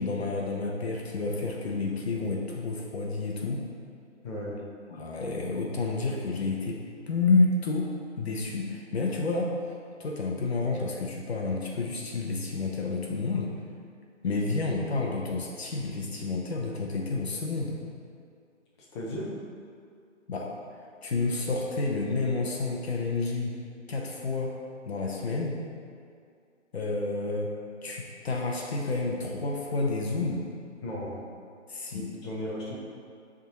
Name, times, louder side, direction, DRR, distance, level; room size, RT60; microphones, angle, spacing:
voice 1, 0.0-3.6 4.9-7.9 8.2-9.5 10.0-13.5 14.2-17.8 20.3-20.5 21.0-23.6 23.9-24.5 24.9-25.6 26.7-27.5 27.8-30.4 31.7-32.1, left 3 dB, 55° left, -1 dB, 0.8 m, -29 dB
voice 2, 4.2-4.6 18.9-19.3 30.8-31.2 31.9-32.8, left 1 dB, 20° left, -6 dB, 0.9 m, -35 dB
10.5 x 3.7 x 2.9 m, 2.3 s
figure-of-eight pair, 145°, 38 cm